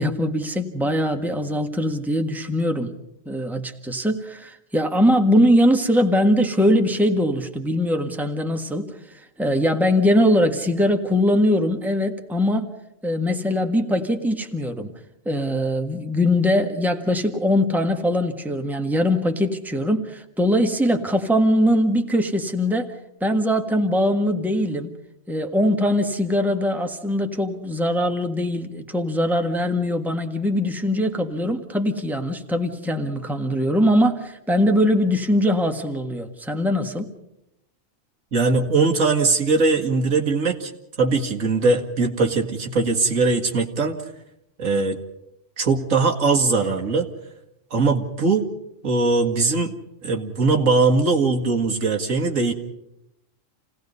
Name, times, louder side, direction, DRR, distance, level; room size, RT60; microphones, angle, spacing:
voice 1, 0.0-2.9 3.2-12.7 13.0-14.9 15.2-22.9 23.2-24.9 25.3-37.1, equal, ahead, 4 dB, 1.5 m, -21 dB
voice 2, 38.3-40.7 41.0-44.0 44.6-45.0 45.6-47.1 47.7-48.5 48.8-49.7 50.0-52.5, right 3 dB, 75° right, 2 dB, 2.4 m, -20 dB
29.0 x 18.5 x 5.5 m, 0.83 s
omnidirectional pair, 1.4 m